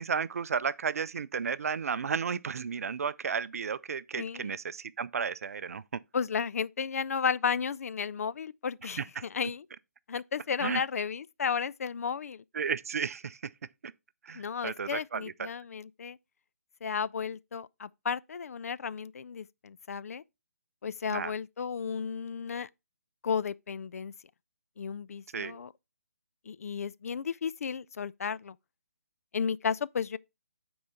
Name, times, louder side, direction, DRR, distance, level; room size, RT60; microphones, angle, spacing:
voice 1, 0.0-5.8 9.0-9.2 10.6-10.8 12.5-13.4 14.2-15.5 21.1-21.3 25.3-25.6, right 6 dB, 65° right, 0.5 m, -33 dB
voice 2, 4.2-4.5 6.1-9.6 10.1-12.4 14.3-16.2 16.8-20.2 20.8-22.7 23.2-24.1 24.8-25.7 26.5-28.6 29.3-30.2, left 6 dB, 65° left, 0.4 m, -33 dB
9.5 x 3.9 x 4.4 m
hypercardioid pair, 155°, 9 cm